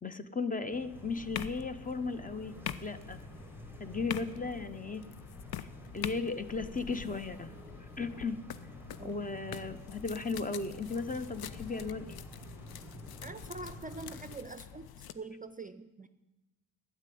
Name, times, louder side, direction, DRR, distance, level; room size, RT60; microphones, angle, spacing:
voice 1, 0.0-2.5 2.8-3.2 3.8-5.0 5.6-5.7 5.9-7.5 8.0-8.4 9.0-12.2, left 4 dB, 20° left, 11 dB, 0.7 m, -36 dB
sound 1, 0.7-14.4, right 2 dB, 5° right, 0.9 m, -52 dB
sound 2, 0.9-15.1, left 9 dB, 80° left, 0.6 m, -45 dB
voice 2, 13.2-14.9 15.1-16.1, right 3 dB, 25° right, 11 dB, 0.5 m, -44 dB
9.5 x 7.7 x 9.3 m, 1.1 s
cardioid pair, 70°, 37 cm